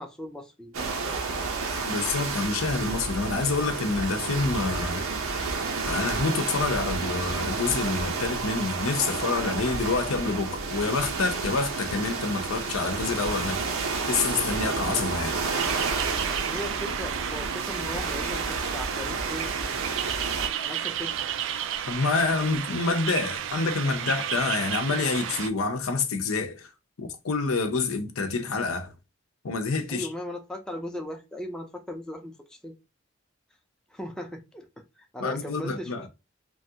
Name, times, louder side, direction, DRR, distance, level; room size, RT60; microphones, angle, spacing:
voice 1, 0.0-1.5 16.3-19.5 20.6-21.2 29.9-32.7 33.9-34.7 35.0-36.1, left 1 dB, 5° left, 0.4 m, -38 dB
sound 1, 0.7-20.5, right 4 dB, 85° right, 0.7 m, -30 dB
voice 2, 1.8-5.0 5.8-13.6 14.1-15.4 21.9-26.7 27.0-28.9 29.4-30.1 35.2-36.1, left 4 dB, 85° left, 0.6 m, -27 dB
sound 2, 15.6-25.5, right 9 dB, 65° right, 0.3 m, -32 dB
3.1 x 2.4 x 2.7 m
head